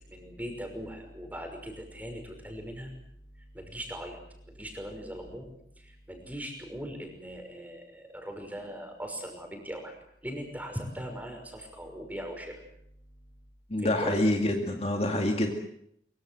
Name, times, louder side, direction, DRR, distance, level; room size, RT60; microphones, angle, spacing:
voice 1, 0.1-2.9 3.5-4.2 4.5-5.5 5.8-10.0 10.2-12.6 13.8-14.2, equal, 10° right, 4 dB, 5.8 m, -40 dB
voice 2, 13.7-15.5, left 1 dB, 35° left, 3 dB, 2.4 m, -26 dB
24.0 x 24.0 x 7.9 m, 0.72 s
head